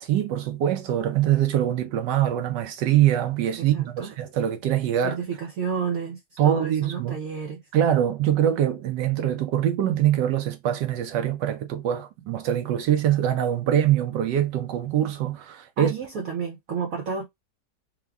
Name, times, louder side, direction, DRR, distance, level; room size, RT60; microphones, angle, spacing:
voice 1, 0.0-5.2 6.4-7.2 7.7-15.9, right 11 dB, 80° right, 1.2 m, -23 dB
voice 2, 3.6-4.1 5.0-7.6 15.8-17.3, right 6 dB, 60° right, 1.0 m, -31 dB
3.6 x 2.2 x 3.4 m
omnidirectional pair, 1.9 m